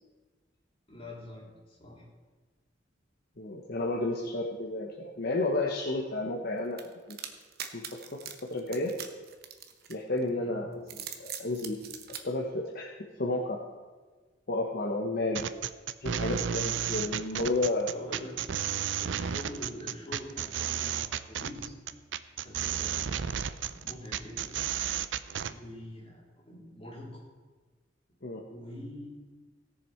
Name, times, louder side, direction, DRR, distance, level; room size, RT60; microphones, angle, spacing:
voice 1, 0.9-2.0 10.3-10.5 17.9-18.5 19.0-21.7 22.4-24.7 25.5-27.2 28.5-29.1, left 1 dB, 30° left, -6 dB, 3.9 m, -45 dB
voice 2, 3.4-6.8 7.1-7.2 7.7-8.0 8.5-8.9 9.9-12.9 13.2-13.6 14.5-15.5 16.0-17.9 28.2-28.4, left 2 dB, 55° left, -1 dB, 1.1 m, -32 dB
sound 1, 6.8-10.2 10.8-12.2, right 9 dB, 55° right, 1.0 m, -41 dB
sound 2, 15.3-25.5, right 8 dB, 75° right, 0.5 m, -32 dB
17.5 x 7.0 x 4.5 m, 1.3 s
head